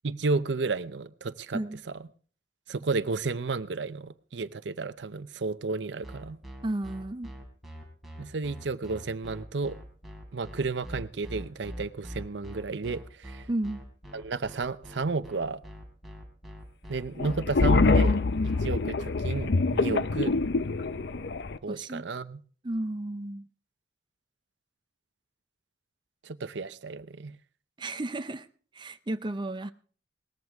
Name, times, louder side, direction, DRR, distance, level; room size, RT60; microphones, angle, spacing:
voice 1, 0.0-1.6 2.7-6.4 8.2-9.8 10.3-13.5 14.1-15.6 16.9-18.2 18.6-20.3 21.6-22.4 26.2-27.4, right 3 dB, 70° right, 0.7 m, -32 dB
sound 1, 6.0-18.6, equal, ahead, 3.3 m, -42 dB
voice 2, 6.6-7.3 13.5-13.8 21.7-22.0 22.6-23.5 27.8-28.5 28.7-29.7, right 1 dB, 25° right, 0.5 m, -33 dB
sound 2, 17.2-21.6, left 3 dB, 65° left, 0.6 m, -25 dB
19.0 x 14.5 x 3.5 m
head